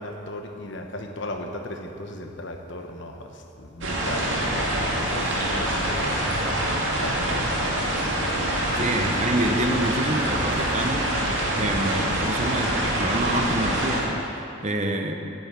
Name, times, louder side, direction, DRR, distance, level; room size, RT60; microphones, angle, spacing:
voice 1, 0.0-6.2 6.8-7.8, left 1 dB, 60° left, 3 dB, 1.1 m, -36 dB
sound 1, 3.8-14.0, right 1 dB, 65° right, 2.3 m, -25 dB
voice 2, 8.8-11.1 11.6-15.2, right 1 dB, 35° right, 4 dB, 0.9 m, -27 dB
9.7 x 7.9 x 8.8 m, 2.8 s
head